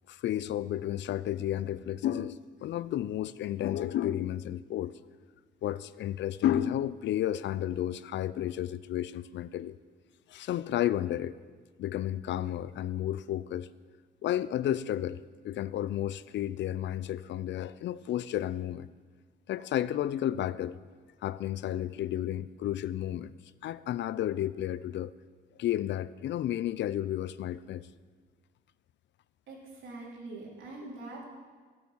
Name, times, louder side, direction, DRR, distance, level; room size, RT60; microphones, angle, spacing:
voice 1, 0.1-4.9 5.6-9.8 10.3-11.4 11.8-13.7 14.2-18.9 19.5-20.8 21.2-23.3 23.6-25.1 25.6-27.9, left 12 dB, 65° left, 0.5 m, -32 dB
voice 2, 29.5-31.3, right 2 dB, 75° right, 3.5 m, -43 dB
12.0 x 7.8 x 7.3 m
cardioid pair, 90°, 20 cm